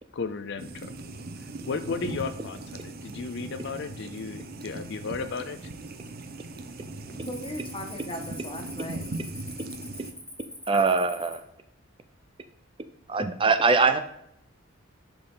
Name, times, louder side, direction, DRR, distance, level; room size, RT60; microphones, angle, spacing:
voice 1, 0.1-0.9 1.7-5.7, left 4 dB, 60° left, 10 dB, 0.6 m, -34 dB
sound 1, 0.6-10.1, right 2 dB, 50° right, 0.8 m, -39 dB
Cricket, 2.4-2.8 3.3-3.7 4.3-4.4 5.0-5.6 5.9-6.2 6.5-11.4, left 1 dB, 5° left, 1.2 m, -44 dB
voice 2, 7.1-9.2, left 1 dB, 25° left, 3 dB, 1.5 m, -38 dB
voice 3, 10.7-11.4 13.1-14.0, right 4 dB, 25° right, 9 dB, 0.5 m, -22 dB
11.0 x 5.5 x 4.0 m, 0.77 s
head